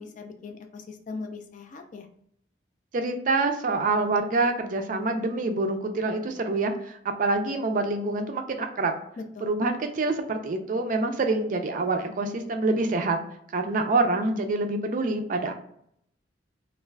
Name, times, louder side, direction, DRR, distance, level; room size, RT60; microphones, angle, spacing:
voice 1, 0.0-2.1 9.4-9.5, left 4 dB, 45° left, 5 dB, 0.4 m, -40 dB
voice 2, 2.9-8.9 9.4-13.2 13.5-15.5, right 3 dB, 45° right, 5 dB, 0.4 m, -26 dB
2.4 x 2.3 x 3.1 m, 0.71 s
head